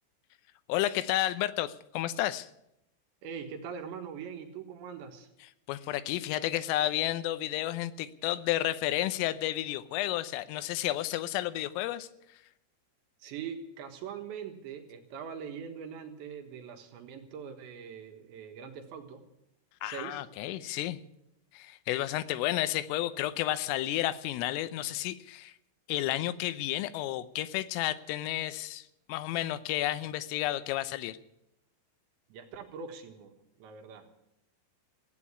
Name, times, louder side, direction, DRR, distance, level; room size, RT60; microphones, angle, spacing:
voice 1, 0.7-2.5 5.7-12.1 19.8-21.0 21.5-25.5 25.9-31.2, left 14 dB, 85° left, 14 dB, 3.4 m, -31 dB
voice 2, 3.2-5.3 13.2-19.2 19.8-20.2 32.3-33.3 33.6-34.1, right 7 dB, 70° right, 4 dB, 3.5 m, -42 dB
16.0 x 9.4 x 9.7 m, 0.81 s
omnidirectional pair, 5.8 m